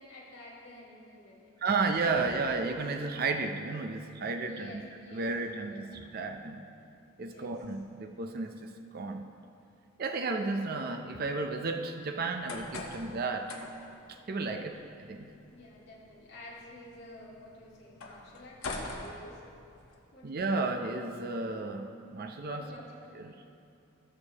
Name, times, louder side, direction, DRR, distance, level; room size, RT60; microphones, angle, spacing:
voice 1, 0.0-1.5 4.5-5.3 5.7-5.8 7.2-7.5 14.4-14.7 15.5-19.4 20.1-20.3 22.4-23.2, left 1 dB, 50° left, -6 dB, 2.1 m, -50 dB
voice 2, 1.6-4.8 5.1-6.6 7.2-9.3 10.0-13.6 14.1-14.8 15.1-15.3 20.2-22.6 23.1-23.3, right 3 dB, 45° right, 5 dB, 0.5 m, -33 dB
sound 1, 12.2-19.9, left 2 dB, 75° left, 1.1 m, -45 dB
17.0 x 6.6 x 2.9 m, 2.6 s
head